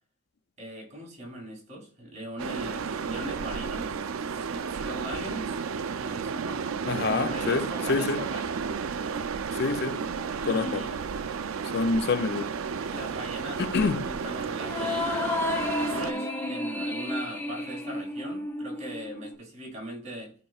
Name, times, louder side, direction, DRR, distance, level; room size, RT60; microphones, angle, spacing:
voice 1, 0.6-4.0 4.3-5.6 5.9-8.5 10.4-11.0 12.9-20.3, right 1 dB, 35° right, 2.9 m, -40 dB
sound 1, 2.4-16.1, right 6 dB, 75° right, 0.5 m, -32 dB
voice 2, 6.9-8.2 9.5-10.0 10.5-10.8 11.7-12.5 13.6-14.1, left 4 dB, 50° left, 0.4 m, -27 dB
sound 2, 14.6-19.3, left 2 dB, 10° left, 0.8 m, -31 dB
13.0 x 4.4 x 2.4 m
head